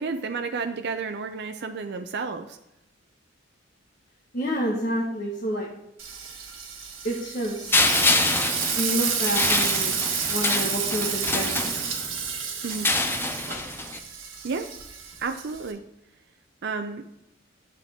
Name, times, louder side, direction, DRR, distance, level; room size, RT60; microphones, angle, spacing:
voice 1, 0.0-2.6 12.6-12.9 14.4-14.7 15.2-15.8 16.6-17.0, right 4 dB, 55° right, 6 dB, 0.5 m, -31 dB
voice 2, 4.3-5.7 7.0-7.8 8.7-11.8, equal, 45° left, -3 dB, 1.4 m, -29 dB
Frying (food), 6.0-15.7, right 6 dB, 85° right, 1.5 m, -30 dB
sound 1, 7.7-12.2 12.7-14.0, left 2 dB, 10° left, 0.5 m, -26 dB
10.0 x 7.7 x 3.6 m, 0.88 s
head